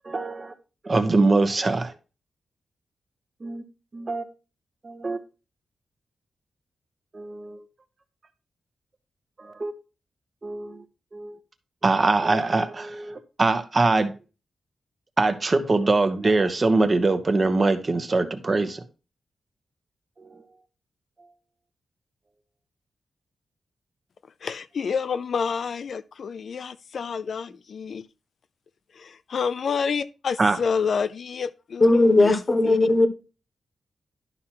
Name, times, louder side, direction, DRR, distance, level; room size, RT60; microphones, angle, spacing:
voice 1, 0.0-0.5 0.8-1.9 3.4-3.6 3.9-4.2 4.8-5.2 7.1-7.6 9.4-9.7 10.4-10.8 11.1-11.3 11.8-14.1 15.2-18.8 20.2-20.4 30.4-30.6, right 3 dB, 30° right, 1.1 m, -23 dB
voice 2, 24.4-28.1 28.9-32.4 32.6-32.8, left 6 dB, 60° left, 0.4 m, -29 dB
voice 3, 31.8-33.1, left 2 dB, 25° left, 1.2 m, -18 dB
11.5 x 5.7 x 2.9 m
wide cardioid pair, 140°, 0 cm